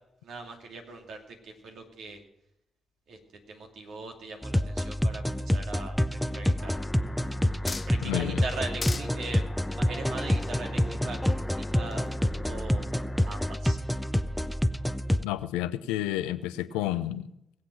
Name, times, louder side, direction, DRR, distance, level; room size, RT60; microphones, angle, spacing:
voice 1, 0.2-2.2 3.1-3.2 3.5-6.8 7.6-12.0 12.5-13.8, right 3 dB, 75° right, 2 dB, 2.7 m, -41 dB
sound 1, 4.4-15.2, left 1 dB, 5° left, 0.7 m, -28 dB
sound 2, 6.6-13.6, left 2 dB, 20° left, 1.2 m, -43 dB
sound 3, 7.2-8.2 8.5-9.1 10.0-11.4 11.9-12.2, left 4 dB, 40° left, 0.7 m, -39 dB
voice 2, 8.0-8.4 15.2-17.3, left 14 dB, 90° left, 13 dB, 0.6 m, -30 dB
20.5 x 7.8 x 6.2 m, 0.79 s
hypercardioid pair, 45°, 0 cm